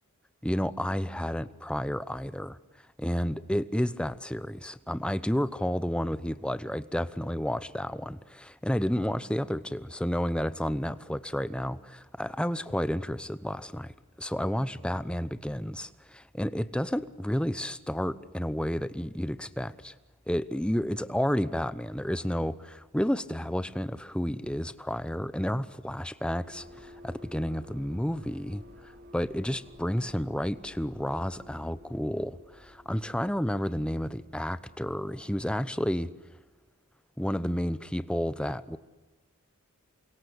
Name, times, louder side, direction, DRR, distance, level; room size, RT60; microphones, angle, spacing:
voice 1, 0.4-2.6 3.0-19.9 20.3-36.1 37.2-38.8, equal, 5° left, 0.9 m, -31 dB
sound 1, 26.4-35.9, left 1 dB, 45° right, 3.6 m, -53 dB
29.0 x 25.0 x 8.2 m
head